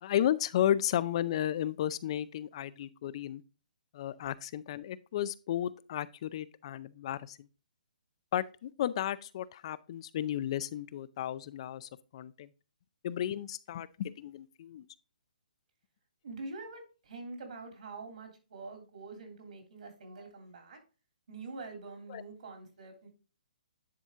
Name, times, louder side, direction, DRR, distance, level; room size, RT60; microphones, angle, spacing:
voice 1, 0.0-3.4 3.9-7.5 8.3-12.5 13.0-14.9 22.1-22.2, left 11 dB, 40° left, 0.5 m, -33 dB
voice 2, 16.2-20.8 21.3-23.1, right 3 dB, 65° right, 3.0 m, -45 dB
10.0 x 4.2 x 3.7 m
hypercardioid pair, 155°, 4 cm